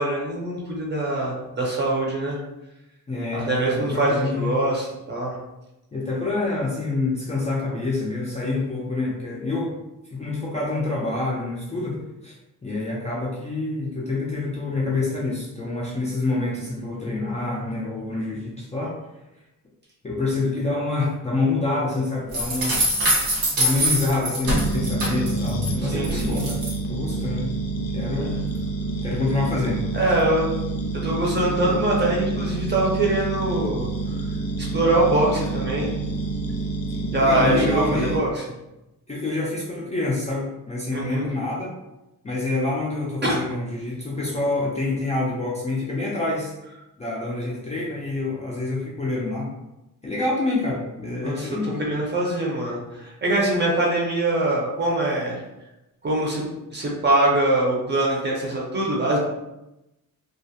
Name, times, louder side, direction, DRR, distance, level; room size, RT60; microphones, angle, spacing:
voice 1, 0.0-2.4 3.3-5.4 25.8-26.4 29.9-30.5 31.0-33.9 34.6-35.9 37.1-38.4 40.9-41.3 43.2-43.4 51.2-55.4 56.0-56.5 56.7-59.2, right 1 dB, 30° right, -3 dB, 0.6 m, -23 dB
voice 2, 3.1-4.6 5.9-9.7 10.1-12.3 12.6-19.0 20.0-22.8 23.6-26.6 26.9-27.5 27.9-28.4 29.0-29.8 37.3-38.2 39.1-41.8 42.2-46.5 47.0-49.5 50.0-51.8, left 2 dB, 20° left, -6 dB, 0.4 m, -27 dB
sound 1, 22.3-25.7 26.0-26.7, right 1 dB, 80° right, 1.0 m, -23 dB
sound 2, 24.4-38.2, right 3 dB, 75° left, 0.5 m, -28 dB
2.3 x 2.0 x 2.6 m, 0.94 s
wide cardioid pair, 140°, 35 cm